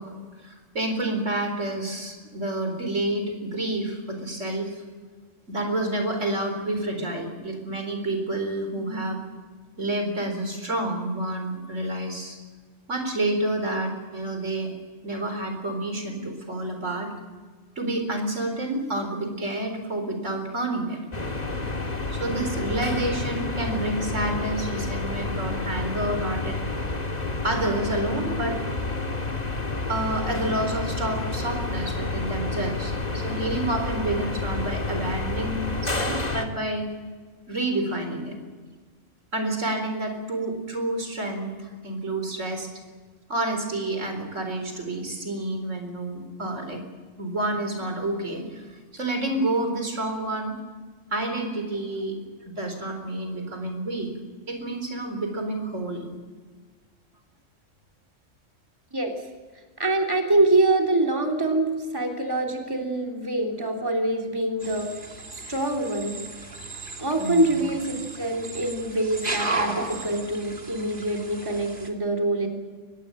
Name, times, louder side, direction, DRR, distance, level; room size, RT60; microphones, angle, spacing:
voice 1, 0.0-4.8 5.5-9.2 9.8-12.4 12.9-14.7 15.0-17.1 17.8-21.0 22.1-26.6 27.4-28.6 29.9-36.9 37.5-38.3 39.3-42.7 43.3-46.8 47.2-48.6 48.9-50.6 51.1-52.2 52.5-54.1 54.5-56.0 67.2-67.5, right 1 dB, 70° right, 5 dB, 4.5 m, -29 dB
sound 1, 21.1-36.5, left 3 dB, 30° left, 2.1 m, -29 dB
voice 2, 59.8-64.9 65.3-66.2 67.0-72.5, right 2 dB, 15° right, 1 dB, 3.3 m, -25 dB
sound 2, 64.6-71.9, right 3 dB, 40° right, 2.8 m, -34 dB
24.5 x 20.0 x 9.0 m, 1.5 s
omnidirectional pair, 1.3 m